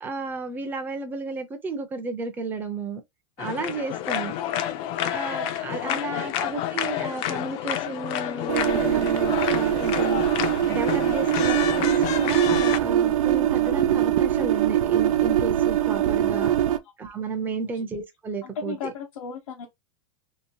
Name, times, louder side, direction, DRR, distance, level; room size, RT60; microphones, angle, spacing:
voice 1, 0.0-3.0 3.4-4.4 5.1-10.4 10.7-16.5 17.0-18.9, right 3 dB, 10° right, 0.6 m, -32 dB
sound 1, 3.4-12.8, left 11 dB, 40° left, 0.5 m, -29 dB
voice 2, 5.8-6.4 16.4-16.8 17.6-17.7 18.4-19.7, left 5 dB, 80° left, 1.1 m, -37 dB
sound 2, 8.5-16.8, right 11 dB, 85° right, 0.5 m, -22 dB
2.9 x 2.9 x 2.8 m
supercardioid pair, 155°, 17 cm